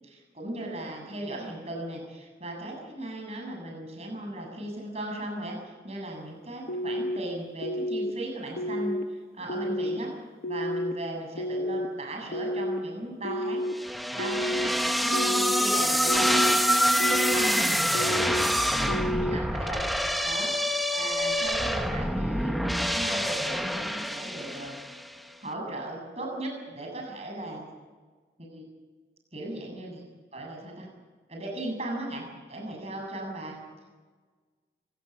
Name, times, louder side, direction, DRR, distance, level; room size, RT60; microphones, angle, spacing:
voice 1, 0.0-10.1 10.5-13.6 14.1-17.7 18.0-19.9 20.2-24.7 25.4-27.6 28.5-28.6 29.3-30.0 30.3-30.9 31.3-33.6, right 1 dB, 35° right, 1 dB, 7.4 m, -37 dB
sound 1, 6.7-7.2 7.6-8.1 8.6-9.0 9.5-10.0 10.4-10.9 11.4-11.9 12.3-12.8 13.2-13.7 14.2-14.7 15.1-15.6 16.1-16.5 17.0-17.5 17.9-18.4 18.9-19.4, equal, 55° left, 1.3 m, -30 dB
sound 2, 13.8-25.1, equal, ahead, 1.1 m, -26 dB
26.5 x 18.0 x 7.3 m, 1.4 s
head